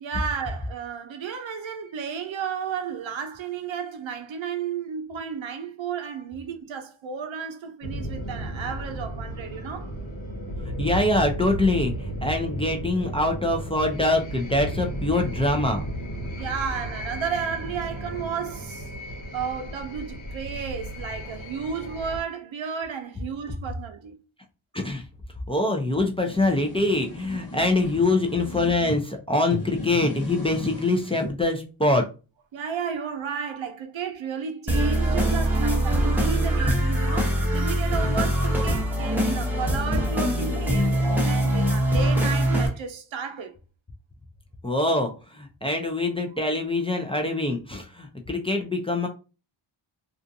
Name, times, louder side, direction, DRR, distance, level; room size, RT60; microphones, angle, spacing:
voice 1, 0.0-9.9 16.4-18.9 19.3-24.1 32.5-40.9 41.2-43.6, right 6 dB, 65° right, 0.7 m, -33 dB
sound 1, 7.8-22.2, right 1 dB, 65° left, 1.2 m, -34 dB
voice 2, 10.8-15.8 24.7-25.0 25.5-32.1 44.6-49.1, left 2 dB, 10° left, 0.4 m, -24 dB
sound 2, 25.9-29.0 29.4-31.3, left 1 dB, 45° left, 1.0 m, -36 dB
sound 3, 34.7-42.7, equal, 5° right, 0.8 m, -23 dB
2.5 x 2.4 x 2.6 m
cardioid pair, 65°, 49 cm